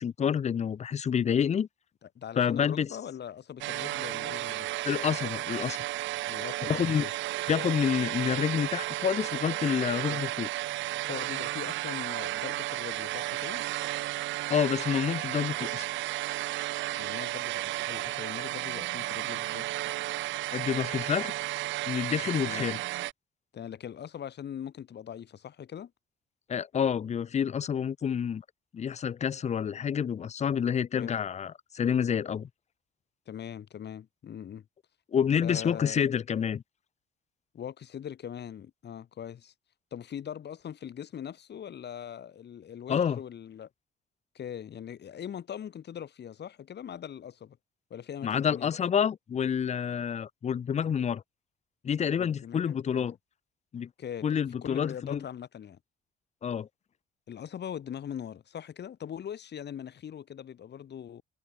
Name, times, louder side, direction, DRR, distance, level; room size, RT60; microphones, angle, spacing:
voice 1, 0.0-1.7 2.4-2.9 4.8-5.8 6.7-7.1 7.5-10.5 14.5-15.9 20.5-21.3 21.9-22.8 26.5-28.4 28.7-32.5 35.1-36.6 42.9-43.2 48.2-51.2 51.8-53.2 53.7-53.9 54.2-55.2 56.4-56.7, left 8 dB, 35° left, 0.5 m, -28 dB
voice 2, 2.2-4.7 6.3-7.1 10.1-10.2 11.1-13.6 17.0-19.9 22.4-22.8 23.5-25.9 30.9-31.2 33.3-34.7 35.4-36.0 37.5-39.5 39.9-43.7 44.4-47.6 47.9-48.7 52.2-53.2 54.0-54.3 54.6-55.8 57.3-61.2, left 9 dB, 60° left, 3.4 m, -41 dB
sound 1, 3.6-23.1, right 16 dB, 70° right, 0.4 m, -33 dB
cardioid pair, 90°, 20 cm